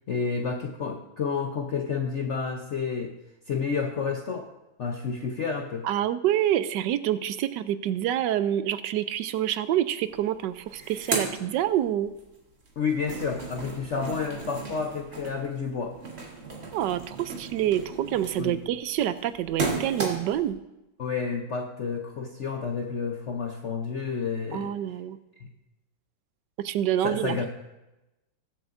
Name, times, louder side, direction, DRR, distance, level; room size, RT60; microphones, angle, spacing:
voice 1, 0.1-3.1 3.5-4.5 4.8-5.9 12.8-16.0 18.4-18.6 21.0-24.7 27.0-27.5, left 5 dB, 65° left, 2 dB, 0.7 m, -30 dB
voice 2, 5.8-12.1 16.7-20.6 24.5-25.2 26.6-27.4, right 11 dB, 75° right, 13 dB, 1.1 m, -27 dB
sound 1, 10.1-10.2 10.5-12.2 12.6-20.5, right 3 dB, 35° right, 1.4 m, -35 dB
21.0 x 7.7 x 2.6 m, 0.97 s
omnidirectional pair, 2.2 m